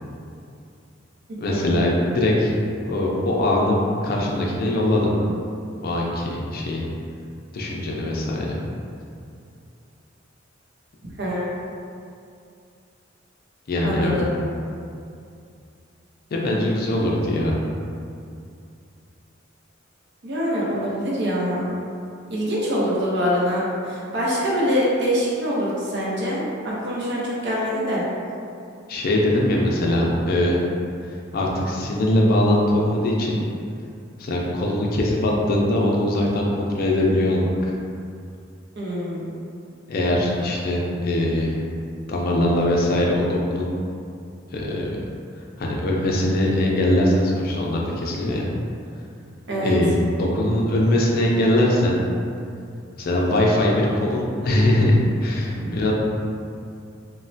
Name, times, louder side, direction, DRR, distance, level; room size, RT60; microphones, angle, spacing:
voice 1, 1.4-2.5 2.8-5.1 5.8-6.8 7.5-8.6 13.7-14.2 16.3-17.6 28.9-30.6 31.1-33.4 34.2-37.7 39.9-41.6 42.1-43.7 44.5-45.0 45.6-48.5 49.6-52.0 53.0-55.9, left 1 dB, 50° left, -2 dB, 0.4 m, -21 dB
voice 2, 11.2-11.5 13.8-14.3 20.2-21.7 22.3-28.0 38.8-39.3 49.5-49.8 55.5-55.8, equal, 60° right, -6 dB, 0.7 m, -24 dB
3.1 x 2.1 x 2.6 m, 2.4 s
head